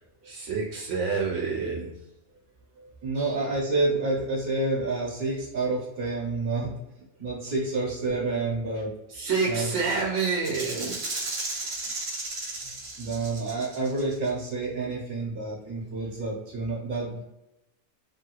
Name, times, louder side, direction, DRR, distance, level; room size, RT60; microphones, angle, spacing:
voice 1, 0.2-1.9 3.1-3.4 9.1-11.1 11.6-11.7, right 4 dB, 90° right, -2 dB, 0.9 m, -28 dB
voice 2, 2.8-6.7 7.2-8.9 9.5-9.7 13.0-17.2, right 3 dB, 60° right, -5 dB, 1.0 m, -29 dB
Rattle (instrument), 10.4-14.3, right 2 dB, 40° right, 0.5 m, -34 dB
3.0 x 2.4 x 2.8 m, 0.92 s
omnidirectional pair, 1.2 m